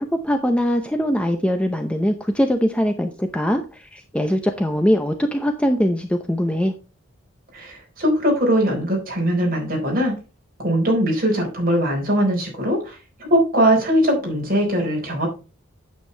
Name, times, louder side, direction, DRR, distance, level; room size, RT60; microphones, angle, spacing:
voice 1, 0.0-6.7, equal, 5° left, 5 dB, 0.6 m, -21 dB
voice 2, 7.5-10.1 10.6-15.3, equal, 40° right, 0 dB, 4.1 m, -20 dB
8.9 x 7.5 x 3.3 m, 0.32 s
head